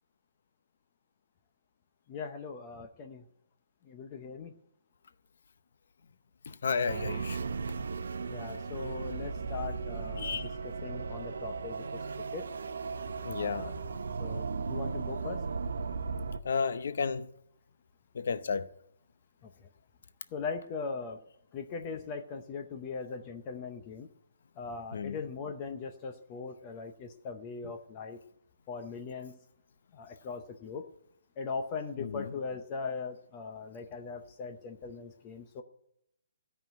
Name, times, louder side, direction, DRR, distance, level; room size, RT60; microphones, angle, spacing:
voice 1, 2.1-3.2 3.8-4.5 8.3-12.5 13.4-13.7 14.2-15.4 19.4-19.7 20.3-21.2 21.5-24.1 24.6-28.2 28.7-29.4 29.9-30.9 31.4-35.6, left 5 dB, 20° left, 0.6 m, -40 dB
voice 2, 6.5-7.4 10.2-10.5 13.2-13.6 16.4-17.3 18.1-18.7 24.9-25.2 32.0-32.3, left 5 dB, 55° left, 0.7 m, -32 dB
sound 1, 6.9-16.4, right 4 dB, 80° right, 0.7 m, -36 dB
16.0 x 5.7 x 9.1 m
hypercardioid pair, 180°, 0 cm